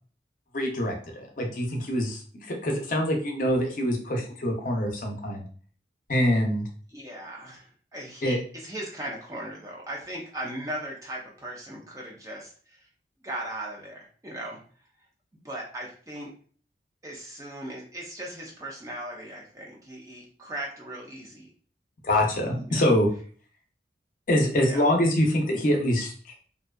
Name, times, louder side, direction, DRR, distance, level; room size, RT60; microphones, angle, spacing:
voice 1, 0.5-5.4 6.1-6.6 8.2-8.4 22.0-23.1 24.3-26.3, left 1 dB, 45° left, 1 dB, 0.5 m, -25 dB
voice 2, 6.9-12.9 13.2-14.6 15.4-16.3 17.0-21.5 22.6-22.9 24.5-25.0, right 1 dB, 20° right, -2 dB, 0.5 m, -38 dB
2.6 x 2.2 x 2.2 m, 0.43 s
head